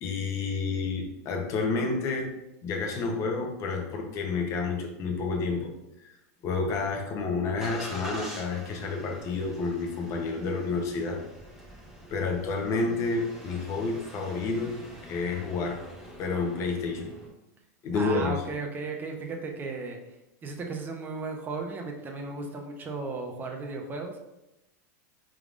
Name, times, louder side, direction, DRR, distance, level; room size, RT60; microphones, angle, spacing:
voice 1, 0.0-2.3 2.6-5.7 6.0-6.1 6.4-11.2 12.1-15.8 16.2-17.1 17.8-18.4, left 4 dB, 35° left, 2 dB, 0.8 m, -30 dB
Engine starting, 6.6-17.3, equal, 5° right, 1.2 m, -46 dB
voice 2, 17.9-20.0 20.4-24.2, right 3 dB, 20° right, 2 dB, 0.7 m, -35 dB
4.6 x 3.6 x 2.5 m, 0.92 s
supercardioid pair, 135°, 9 cm